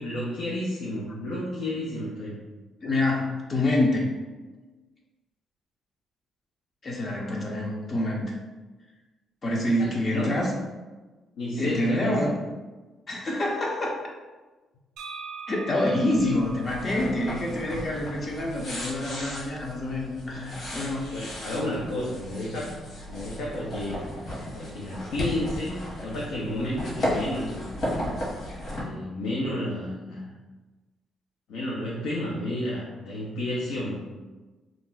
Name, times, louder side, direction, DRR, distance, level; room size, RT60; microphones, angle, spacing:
voice 1, 0.0-2.3 9.8-10.4 11.3-12.2 21.1-22.7 23.1-25.7 26.0-27.7 28.7-30.3 31.5-34.0, left 1 dB, 90° left, -6 dB, 0.5 m, -31 dB
voice 2, 2.8-4.2 6.8-8.3 9.4-10.5 11.6-12.3 13.1-14.0 15.5-21.1, left 1 dB, 40° left, -2 dB, 0.5 m, -27 dB
sound 1, 15.0-18.7, right 5 dB, 80° right, 0.4 m, -43 dB
sound 2, 16.1-28.8, equal, 60° left, 1.2 m, -35 dB
2.4 x 2.1 x 3.8 m, 1.2 s
cardioid pair, 90°, 0 cm